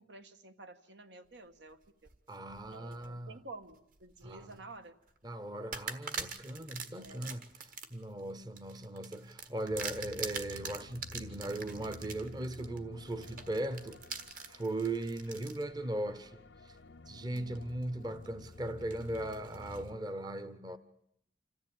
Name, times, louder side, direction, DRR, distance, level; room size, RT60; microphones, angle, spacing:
voice 1, 0.0-1.8 2.6-4.9 7.0-7.3 17.3-17.7, right 2 dB, 80° right, 1.5 m, -51 dB
sound 1, 1.8-3.1 3.6-4.6 5.0-5.2 5.7-15.6 16.2-16.3 17.4-17.8 18.2-19.9, right 5 dB, 50° right, 1.7 m, -44 dB
voice 2, 2.3-3.4 4.2-4.6 5.2-14.0 14.4-16.8 17.1-20.8, right 1 dB, 25° right, 0.8 m, -38 dB
sound 2, 9.7-20.0, left 2 dB, 85° left, 0.8 m, -52 dB
26.5 x 14.0 x 8.9 m
head